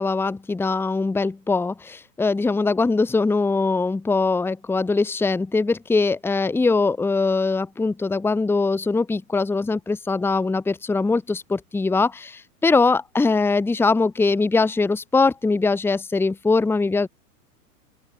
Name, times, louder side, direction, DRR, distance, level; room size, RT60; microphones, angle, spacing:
voice 1, 0.0-17.1, left 3 dB, 5° left, 1.3 m, -22 dB
open air
figure-of-eight pair, 110°, 49 cm